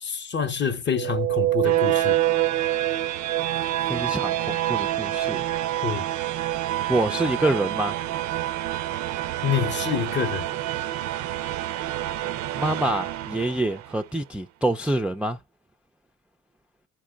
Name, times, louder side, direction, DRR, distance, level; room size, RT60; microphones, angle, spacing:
voice 1, 0.0-2.2 5.8-6.1 9.4-10.5, left 7 dB, 35° left, 0.8 m, -27 dB
sound 1, 0.9-13.9, right 14 dB, 70° right, 0.4 m, -27 dB
voice 2, 3.9-5.4 6.9-8.0 12.6-15.4, right 1 dB, 5° right, 0.3 m, -26 dB
10.0 x 4.6 x 2.2 m
cardioid pair, 90°, 30 cm